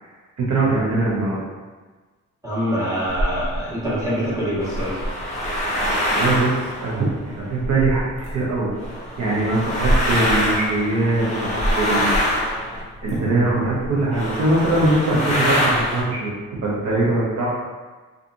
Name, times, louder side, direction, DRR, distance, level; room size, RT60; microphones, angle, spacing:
voice 1, 0.4-1.4 6.2-8.7 9.2-12.1 12.5-12.6 13.0-16.3 16.6-17.5, right 2 dB, 60° right, -7 dB, 0.7 m, -22 dB
voice 2, 2.4-5.0, equal, 10° right, -10 dB, 1.3 m, -24 dB
sound 1, 3.1-3.6 4.4-8.3 8.8-13.4 13.8-13.9 14.1-16.0, equal, 25° left, 1.0 m, -24 dB
2.6 x 2.4 x 2.5 m, 1.3 s
cardioid pair, 90°, 30 cm